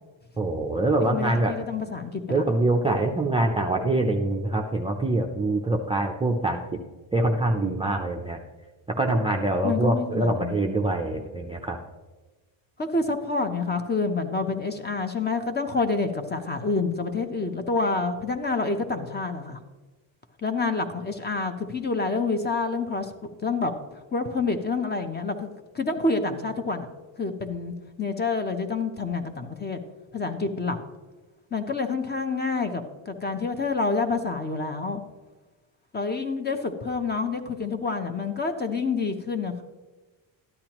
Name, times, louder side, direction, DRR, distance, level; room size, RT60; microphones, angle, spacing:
voice 1, 0.4-1.5 2.3-6.8 7.1-8.4 9.0-11.8, right 2 dB, 10° right, 0 dB, 0.5 m, -24 dB
voice 2, 1.1-2.5 9.6-10.6 11.2-11.3 12.8-19.6 20.4-23.7 24.1-25.5 25.7-26.9 27.2-27.7 28.0-29.8 30.1-30.8 31.5-35.0 35.9-39.6, left 4 dB, 20° left, 7 dB, 0.8 m, -28 dB
13.0 x 10.5 x 3.0 m, 1.2 s
cardioid pair, 135°, 47 cm